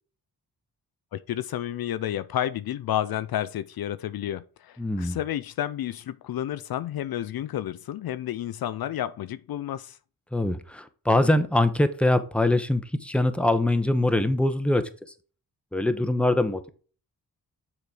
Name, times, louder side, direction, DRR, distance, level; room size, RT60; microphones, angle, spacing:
voice 1, 1.1-10.0, left 12 dB, 70° left, 0.5 m, -31 dB
voice 2, 4.8-5.2 10.3-14.8 15.7-16.7, left 1 dB, 5° left, 0.9 m, -23 dB
6.7 x 4.3 x 4.8 m
cardioid pair, 50°, 39 cm